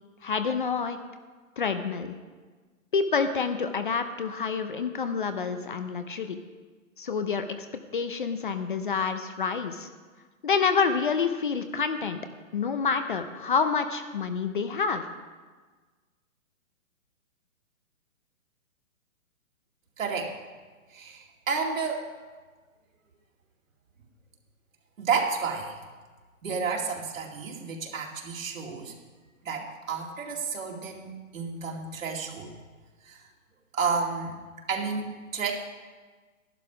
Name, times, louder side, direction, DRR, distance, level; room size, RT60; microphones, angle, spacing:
voice 1, 0.2-1.0 1.6-2.1 2.9-6.4 7.0-7.5 7.9-9.9 10.4-12.2 12.5-15.1, left 5 dB, 40° left, 9 dB, 0.6 m, -28 dB
voice 2, 20.0-20.3 20.9-22.1 25.0-25.8 26.4-28.9 29.4-32.5 33.0-33.2 33.7-34.4 34.7-35.5, right 5 dB, 70° right, 0 dB, 2.4 m, -31 dB
12.0 x 11.5 x 4.9 m, 1.4 s
hypercardioid pair, 170°, 41 cm